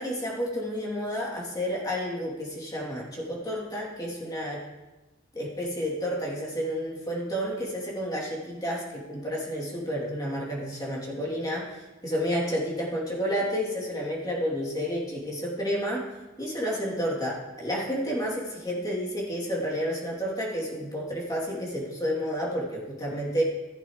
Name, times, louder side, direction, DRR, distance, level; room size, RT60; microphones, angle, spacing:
voice 1, 0.0-4.6 5.3-11.7 12.0-16.0 16.4-23.4, equal, 20° left, -5 dB, 3.1 m, -30 dB
16.0 x 8.8 x 3.3 m, 1.1 s
head